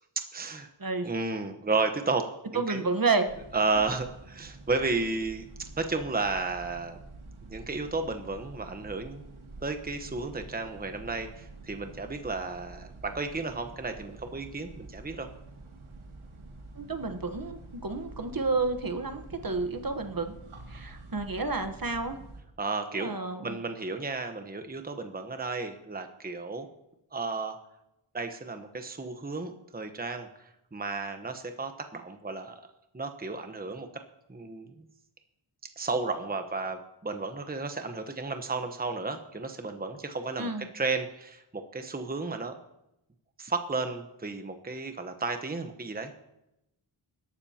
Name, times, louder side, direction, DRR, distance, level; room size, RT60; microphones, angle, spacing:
voice 1, 0.3-0.7 1.0-2.3 2.5-2.9 3.5-7.0 7.5-9.2 9.6-15.3 22.6-23.1 23.4-26.7 27.1-27.5 28.1-30.3 30.7-32.6 32.9-33.9 34.3-34.7 35.8-42.5 43.4-46.1, right 3 dB, 20° right, 6 dB, 1.1 m, -33 dB
voice 2, 2.5-3.3 16.7-20.4 20.7-22.2 22.9-23.6 40.4-40.7, right 3 dB, 45° right, 7 dB, 1.2 m, -30 dB
sound 1, 3.3-22.4, right 2 dB, 75° right, 2.3 m, -48 dB
20.5 x 12.0 x 2.9 m, 0.87 s
wide cardioid pair, 70°, 49 cm